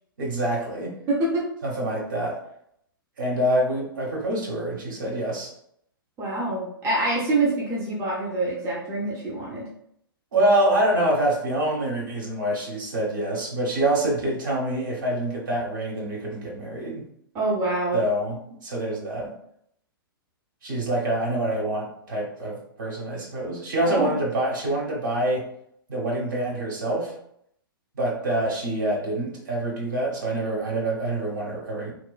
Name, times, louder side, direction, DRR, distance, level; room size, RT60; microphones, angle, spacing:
voice 1, 0.2-1.0 1.6-2.4 3.2-5.5 10.3-17.0 17.9-19.3 20.6-25.5 25.9-27.1 27.9-31.9, right 1 dB, 55° right, -2 dB, 0.9 m, -26 dB
voice 2, 1.1-1.4 6.2-9.7 17.3-18.0 23.8-24.2, right 2 dB, 20° right, -5 dB, 0.6 m, -26 dB
3.0 x 2.1 x 2.3 m, 0.71 s
figure-of-eight pair, 110°, 12 cm